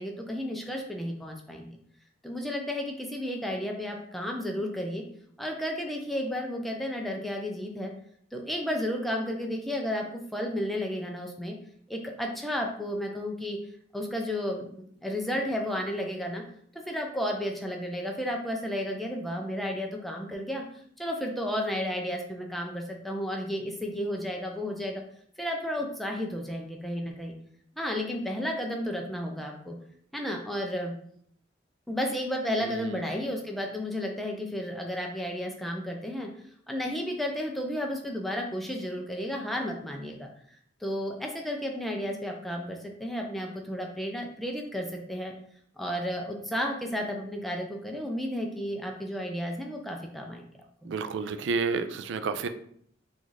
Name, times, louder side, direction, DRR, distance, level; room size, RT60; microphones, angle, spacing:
voice 1, 0.0-1.7 2.2-5.0 5.4-7.9 8.3-11.6 11.9-13.6 13.9-16.4 16.7-20.6 21.0-25.0 25.4-27.3 27.8-29.8 30.1-30.9 31.9-36.3 36.7-40.3 40.8-45.3 45.8-50.4 50.8-50.9, equal, ahead, 1 dB, 0.4 m, -32 dB
voice 2, 32.6-33.1 50.8-52.5, right 4 dB, 75° right, 10 dB, 0.3 m, -31 dB
4.0 x 2.5 x 3.1 m, 0.64 s
head